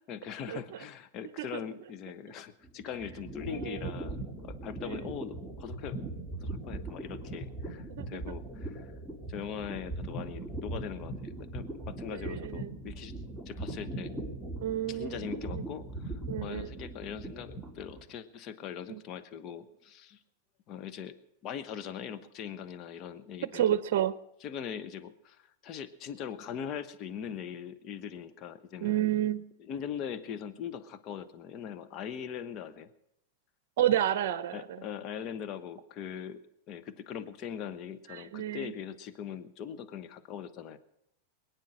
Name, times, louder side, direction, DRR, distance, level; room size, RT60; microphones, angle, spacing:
voice 1, 0.1-6.0 6.4-8.9 9.3-13.1 13.4-14.1 14.9-20.2 20.7-21.2 21.4-23.8 24.4-29.0 29.6-32.9 34.5-36.4 36.7-40.8, left 8 dB, 40° left, 10 dB, 1.1 m, -41 dB
sound 1, 2.6-18.1, right 2 dB, 5° left, 2.3 m, -40 dB
voice 2, 3.5-3.8 4.8-5.0 7.9-8.0 12.2-12.8 14.6-15.2 16.3-16.7 18.9-19.0 23.5-24.2 28.8-29.5 33.8-34.8 38.1-38.7, right 11 dB, 65° right, 15 dB, 0.7 m, -30 dB
21.5 x 9.5 x 6.4 m, 0.82 s
hypercardioid pair, 120°, 0 cm